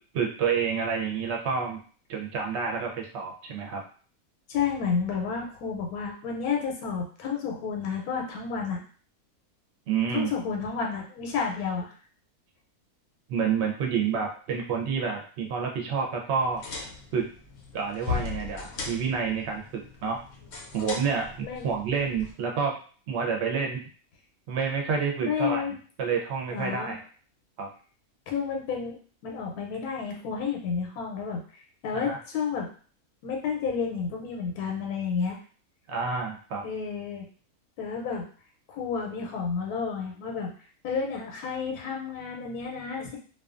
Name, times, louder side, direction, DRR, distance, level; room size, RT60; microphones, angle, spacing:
voice 1, 0.1-1.8 2.1-3.8 9.9-10.3 13.3-16.6 17.1-17.3 17.7-20.2 20.7-22.8 23.1-23.8 24.5-25.6 26.0-27.0 27.6-27.7 31.9-32.2 35.9-36.6, right 6 dB, 60° right, 1 dB, 0.8 m, -29 dB
voice 2, 4.5-8.8 10.1-11.9 21.4-21.7 25.2-25.8 26.5-26.9 28.3-29.0 29.2-31.4 31.8-32.7 33.2-35.4 36.6-37.2 37.8-38.3 38.7-40.5 40.8-43.2, left 6 dB, 85° left, 1 dB, 1.1 m, -31 dB
sound 1, 16.4-22.3, left 5 dB, 60° left, 0.8 m, -38 dB
2.5 x 2.3 x 2.4 m, 0.42 s
omnidirectional pair, 1.6 m